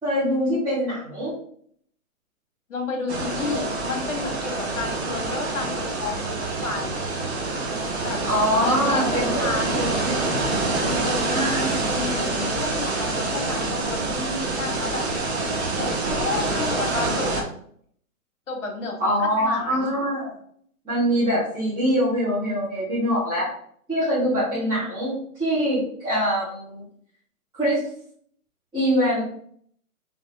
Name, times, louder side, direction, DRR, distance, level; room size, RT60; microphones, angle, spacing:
voice 1, 0.0-1.4 3.4-3.6 8.2-9.3 9.7-10.3 11.3-11.7 19.0-20.3 20.8-23.5 23.9-26.8 27.5-27.9 28.7-29.2, equal, 10° right, -15 dB, 1.8 m, -24 dB
voice 2, 2.7-7.0 8.0-8.2 8.6-9.9 10.8-15.0 15.8-17.5 18.5-20.0 24.4-24.8, left 4 dB, 60° left, 1 dB, 2.0 m, -31 dB
sound 1, 3.1-17.4, right 3 dB, 50° right, 1.1 m, -26 dB
4.1 x 3.4 x 3.6 m, 0.63 s
hypercardioid pair, 165°, 43 cm